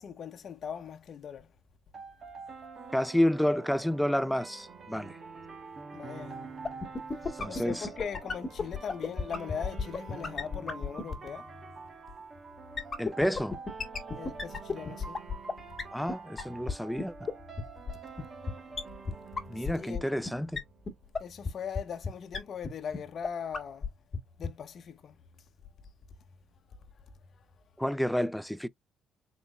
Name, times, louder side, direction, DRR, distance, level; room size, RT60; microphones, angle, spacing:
voice 1, 0.0-1.5 5.9-6.4 7.5-11.5 14.1-15.2 18.6-18.9 19.5-20.1 21.2-23.9 24.4-25.2, left 7 dB, 60° left, 0.8 m, -40 dB
sound 1, 1.9-20.9, right 4 dB, 45° right, 1.3 m, -46 dB
voice 2, 2.9-5.2 7.4-7.9 13.0-13.6 15.9-17.1 19.5-20.6 27.8-28.7, equal, ahead, 0.3 m, -29 dB
sound 2, 6.7-11.3 12.8-15.5 15.8-15.9 16.1-16.2 16.4-16.5 16.7-16.8 17.0-17.1 17.3-17.4 17.6-17.7 17.9-18.0 18.2-18.3 18.5-18.6 18.8-18.9 19.1-19.2 19.4-19.5 19.7-20.0 20.3-20.4 20.6-20.7 20.9-21.0 21.1-21.2 21.5-21.6 21.8-21.9 22.0-22.1 22.3-22.4 22.6-22.7 22.9-23.0 23.2-23.3 23.5-23.9 24.1-24.2 24.4-24.5, left 5 dB, 35° left, 1.6 m, -31 dB
4.1 x 3.8 x 2.4 m
cardioid pair, 90°, 0 cm